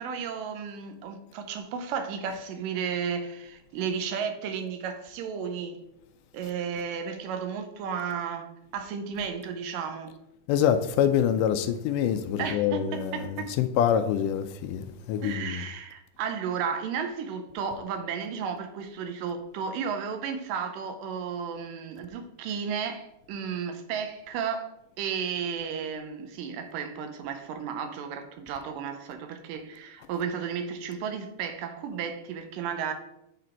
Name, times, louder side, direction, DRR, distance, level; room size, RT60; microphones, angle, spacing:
voice 1, 0.0-5.8 6.3-10.1 12.4-13.6 15.2-32.9, right 6 dB, 90° right, 2.4 m, -33 dB
voice 2, 10.5-15.6, left 9 dB, 85° left, 2.1 m, -26 dB
8.3 x 3.9 x 4.4 m
omnidirectional pair, 3.7 m